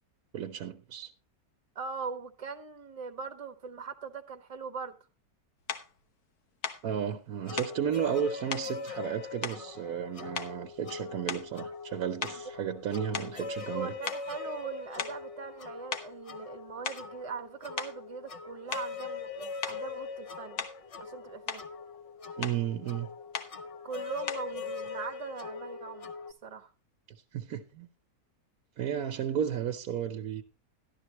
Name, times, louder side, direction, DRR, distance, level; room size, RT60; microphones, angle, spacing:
voice 1, 0.3-1.1 6.8-13.9 22.4-23.1 27.3-27.9 28.8-30.4, right 9 dB, 75° right, 1.3 m, -33 dB
voice 2, 1.7-5.0 13.7-19.3 19.7-20.7 21.0-21.6 23.8-26.1 26.4-26.7, right 5 dB, 25° right, 1.2 m, -40 dB
sound 1, 5.7-5.9 6.6-6.9 7.6-7.8 8.5-8.7 9.4-10.0 10.3-10.7 11.2-11.6 12.2-13.8 14.1-14.3 15.0-15.3 15.9-16.1 16.7-17.1 17.8-18.0 18.7-19.0 19.6-19.8 20.6-20.9 21.2-21.7 22.4-22.6 23.3-23.6 24.3-24.5, left 7 dB, 80° left, 1.6 m, -38 dB
sound 2, 7.4-26.3, left 5 dB, 45° left, 0.4 m, -42 dB
12.5 x 12.0 x 3.0 m
omnidirectional pair, 1.6 m